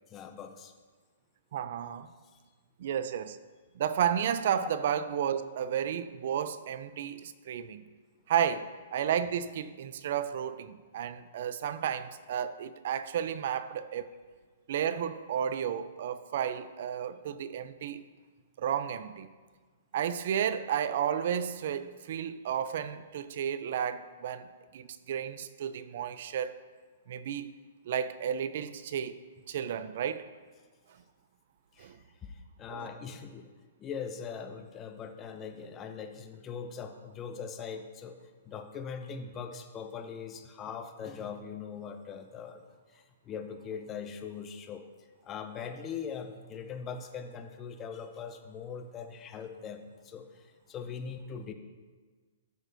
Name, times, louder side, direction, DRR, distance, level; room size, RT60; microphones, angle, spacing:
voice 1, 0.1-0.7 4.6-4.7 31.7-33.5 33.8-38.2 38.4-42.6 42.9-44.8 45.2-51.5, left 6 dB, 20° left, 0.7 m, -41 dB
voice 2, 1.5-2.1 2.8-3.4 3.8-7.8 8.3-14.1 14.7-18.0 18.6-19.3 19.9-24.5 24.7-26.6 27.1-27.5 27.9-29.2 29.5-30.3 31.8-32.0 32.7-32.9, right 9 dB, 60° right, 0.5 m, -32 dB
13.5 x 6.1 x 2.7 m
hypercardioid pair, 145°, 0 cm